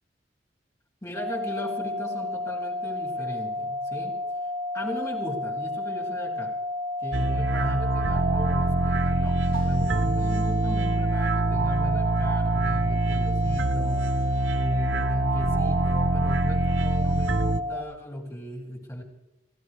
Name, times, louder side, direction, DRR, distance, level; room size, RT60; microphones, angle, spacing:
voice 1, 1.0-4.2 4.7-6.5 7.0-19.0, left 1 dB, 20° left, -3 dB, 2.4 m, -37 dB
sound 1, 1.1-17.8, left 2 dB, 40° right, 2.6 m, -31 dB
sound 2, 7.1-17.6, right 3 dB, 90° right, 0.7 m, -25 dB
sound 3, 9.5-10.1, left 2 dB, 55° left, 3.4 m, -47 dB
29.5 x 15.0 x 3.2 m, 0.95 s
head